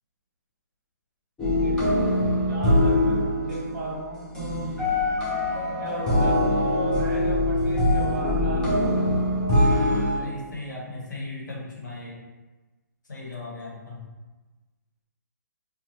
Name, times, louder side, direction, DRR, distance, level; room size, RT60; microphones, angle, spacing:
sound 1, 1.4-10.2, left 1 dB, 10° left, 0.6 m, -23 dB
voice 1, 2.5-4.7 5.7-9.1, right 2 dB, 45° right, -4 dB, 1.1 m, -34 dB
voice 2, 10.2-12.2 13.1-14.1, left 2 dB, 85° left, -4 dB, 1.1 m, -37 dB
3.1 x 2.3 x 2.8 m, 1.2 s
hypercardioid pair, 145°, 10 cm